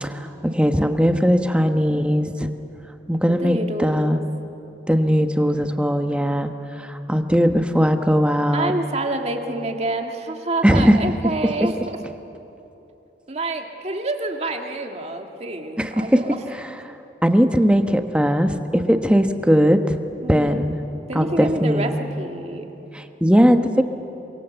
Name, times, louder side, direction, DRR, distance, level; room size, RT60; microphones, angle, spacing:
voice 1, 0.0-2.5 3.1-4.2 4.9-8.7 10.6-11.0 15.8-16.2 16.5-16.6 17.2-20.0 20.3-20.8 21.1-22.0 22.9-23.8, equal, 5° right, 7 dB, 1.1 m, -19 dB
voice 2, 3.3-4.2 8.5-12.0 13.3-16.4 20.2-20.6 21.1-22.7, right 2 dB, 35° right, 4 dB, 2.0 m, -28 dB
28.0 x 24.5 x 8.0 m, 3.0 s
head